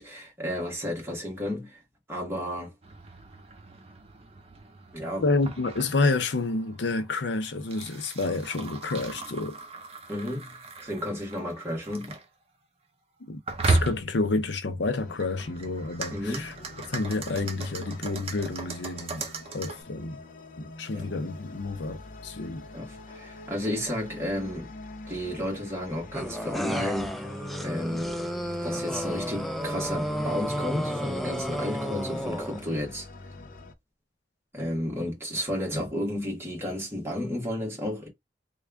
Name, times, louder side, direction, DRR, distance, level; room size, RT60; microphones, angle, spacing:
voice 1, 0.0-1.8 2.1-2.7 4.9-5.2 10.1-12.1 16.1-16.5 20.9-21.1 22.7-24.7 25.1-27.2 27.6-28.2 28.6-33.1 34.5-38.1, left 1 dB, 15° right, 1.5 m, -32 dB
sound 1, 2.8-12.3 13.5-14.3 15.2-19.8, right 3 dB, 35° right, 0.6 m, -35 dB
voice 2, 5.2-9.6 13.3-13.4 13.7-16.5 16.9-19.2 19.5-20.2 20.6-22.7, left 3 dB, 85° left, 0.6 m, -29 dB
sound 2, 14.8-33.7, left 2 dB, 50° left, 0.6 m, -45 dB
sound 3, 26.1-32.8, equal, ahead, 0.3 m, -32 dB
3.3 x 2.4 x 3.4 m
head